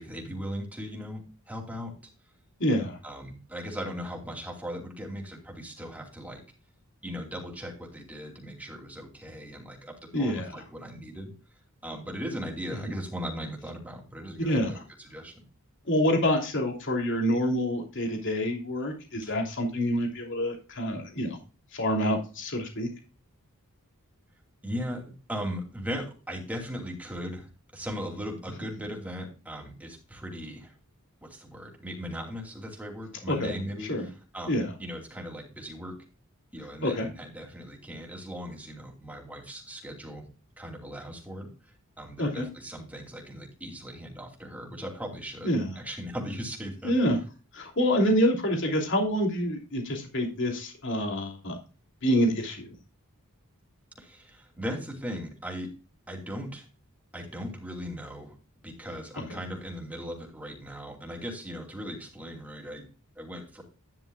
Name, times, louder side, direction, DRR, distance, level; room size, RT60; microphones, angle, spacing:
voice 1, 0.0-2.0 3.0-6.4 7.0-11.3 11.8-15.4 19.2-19.3 24.6-30.7 31.2-36.0 36.5-40.3 40.6-45.5 45.8-46.9 54.0-55.7 56.1-56.7 57.1-58.4 58.6-62.9 63.2-63.6, equal, 5° right, 0 dB, 2.7 m, -38 dB
voice 2, 2.6-3.0 10.1-10.6 14.4-14.8 15.9-21.4 21.7-22.9 33.3-33.5 33.9-34.0 34.5-34.7 36.8-37.1 42.2-42.5 45.4-45.7 46.8-47.2 47.5-51.6 52.0-52.7, equal, 55° left, 2 dB, 3.0 m, -27 dB
11.0 x 10.5 x 2.3 m, 0.34 s
head